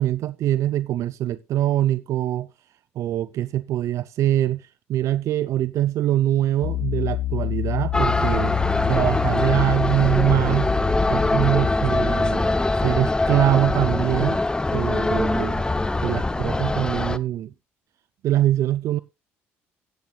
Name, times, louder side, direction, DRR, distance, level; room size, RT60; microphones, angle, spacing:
voice 1, 0.0-2.5 3.0-10.7 11.1-12.6 12.8-14.4 14.7-15.6 16.0-17.5 18.2-19.0, right 13 dB, 65° right, 0.4 m, -23 dB
Piano, 6.6-11.7, left 14 dB, 70° left, 0.6 m, -28 dB
sound 1, 7.9-17.2, left 2 dB, 15° left, 0.6 m, -23 dB
15.0 x 9.4 x 2.3 m
supercardioid pair, 65°, 6 cm